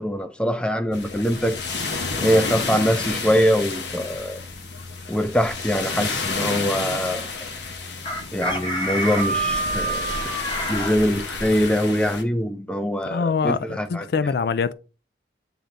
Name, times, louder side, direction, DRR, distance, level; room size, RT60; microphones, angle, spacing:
voice 1, 0.0-1.6 2.2-4.4 5.1-7.2 8.3-10.1 10.7-14.1, equal, 5° left, 0.6 m, -23 dB
sound 1, 0.9-12.2, left 4 dB, 75° left, 1.1 m, -31 dB
Chicken rooster, 8.0-10.9, right 2 dB, 25° left, 1.2 m, -27 dB
voice 2, 13.0-14.7, left 5 dB, 60° left, 0.3 m, -24 dB
8.6 x 3.9 x 3.3 m
head